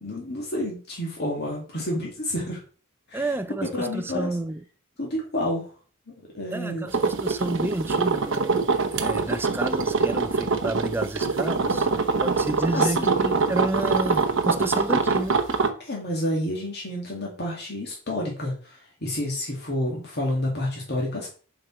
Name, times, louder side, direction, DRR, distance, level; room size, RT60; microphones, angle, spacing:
voice 1, 0.0-2.6 3.1-3.2 3.6-4.3 5.0-5.7 6.1-6.9 12.7-13.2 15.8-21.3, left 1 dB, 50° left, 2.1 m, -29 dB
voice 2, 3.1-4.6 6.5-11.9 12.2-15.4, right 2 dB, 10° right, 0.4 m, -30 dB
sound 1, 6.9-15.7, right 4 dB, 60° right, 0.9 m, -23 dB
6.0 x 5.1 x 4.4 m
head